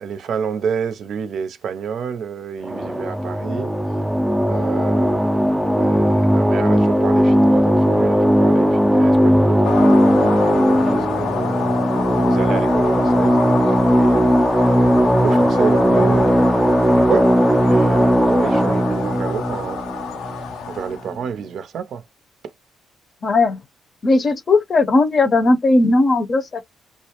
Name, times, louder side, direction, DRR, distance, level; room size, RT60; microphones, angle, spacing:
voice 1, 0.0-3.7 4.5-11.6 12.1-14.9 15.2-19.8 20.7-22.0, right 7 dB, 65° right, 0.5 m, -29 dB
sound 1, 2.6-20.8, equal, ahead, 0.4 m, -17 dB
sound 2, 9.6-21.2, left 6 dB, 85° left, 0.5 m, -28 dB
voice 2, 23.2-23.6 24.0-26.6, left 2 dB, 40° left, 0.6 m, -17 dB
2.3 x 2.0 x 2.8 m
cardioid pair, 90°, 0 cm